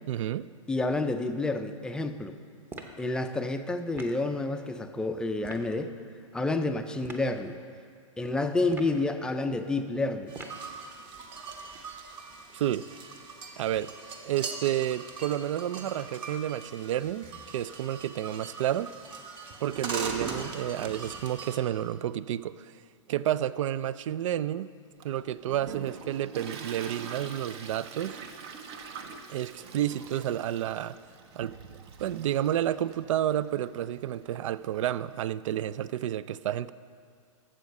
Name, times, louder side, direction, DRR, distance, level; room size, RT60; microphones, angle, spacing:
voice 1, 0.1-0.5 12.5-12.9 13.6-13.9 14.2-18.9 19.6-22.7 23.1-24.7 25.0-28.2 29.3-31.0 31.4-31.5 32.0-36.7, right 11 dB, 70° right, 17 dB, 0.4 m, -30 dB
voice 2, 0.7-2.4 3.0-5.9 6.3-7.6 8.2-10.3, left 2 dB, 5° left, 7 dB, 0.4 m, -29 dB
sound 1, 2.7-3.0 3.9-4.2 5.4-5.7 7.0-7.3 8.6-9.0 10.3-10.7, right 2 dB, 15° right, 0.8 m, -43 dB
sound 2, 10.3-21.6, right 4 dB, 30° right, 1.1 m, -41 dB
Toilet flush, 25.0-35.2, right 5 dB, 50° right, 0.9 m, -45 dB
12.5 x 7.5 x 5.3 m, 2.1 s
hypercardioid pair, 130°, 17 cm